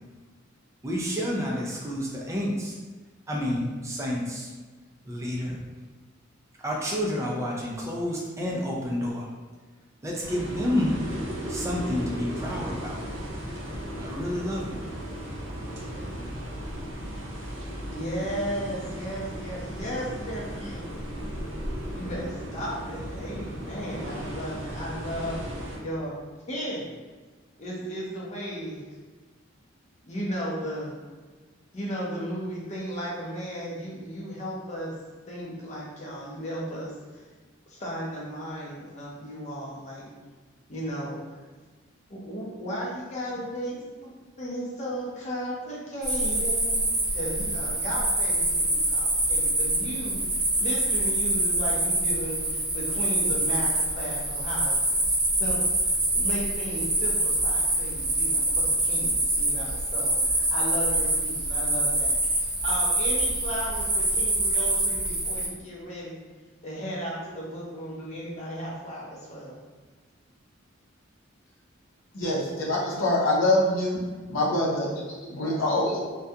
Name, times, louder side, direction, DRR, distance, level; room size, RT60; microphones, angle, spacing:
voice 1, 0.8-2.8 3.3-4.5 5.1-5.6 6.6-9.3 10.0-11.0 11.5-13.0 13.9-14.8, equal, 15° right, -3 dB, 0.4 m, -29 dB
sound 1, 10.2-25.8, equal, 65° right, 0.6 m, -36 dB
voice 2, 17.9-20.8 22.0-25.4 25.8-26.1 26.5-26.8 27.6-28.8 30.1-31.0 31.7-34.9 35.3-37.2 37.7-40.1 40.7-41.4 42.1-46.8 47.1-54.7 55.4-66.2 66.6-69.5, equal, 35° left, -5 dB, 0.6 m, -35 dB
sound 2, 46.0-65.5, right 1 dB, 35° right, 1.0 m, -25 dB
voice 3, 72.2-74.0 74.3-76.0, left 1 dB, 80° left, -4 dB, 0.7 m, -25 dB
2.3 x 2.2 x 2.7 m, 1.4 s
head